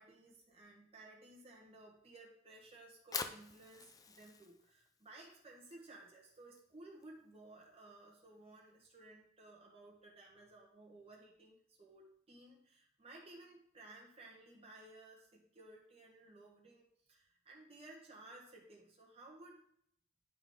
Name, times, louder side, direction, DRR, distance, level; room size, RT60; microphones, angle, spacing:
voice 1, 0.0-19.6, right 2 dB, 30° right, -3 dB, 1.3 m, -57 dB
Fire, 2.8-9.0, left 5 dB, 15° left, 0.4 m, -49 dB
10.0 x 3.8 x 3.8 m, 0.69 s
head